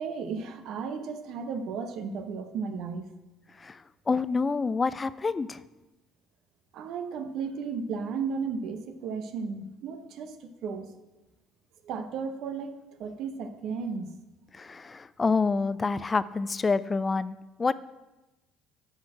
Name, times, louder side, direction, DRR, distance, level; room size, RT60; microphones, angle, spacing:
voice 1, 0.0-3.1 6.7-10.9 11.8-12.7 13.0-14.1, right 5 dB, 65° right, 8 dB, 0.8 m, -34 dB
voice 2, 4.1-5.6 14.5-17.7, left 4 dB, 25° left, 16 dB, 0.3 m, -27 dB
12.0 x 4.4 x 4.8 m, 1.0 s
supercardioid pair, 95°, 0 cm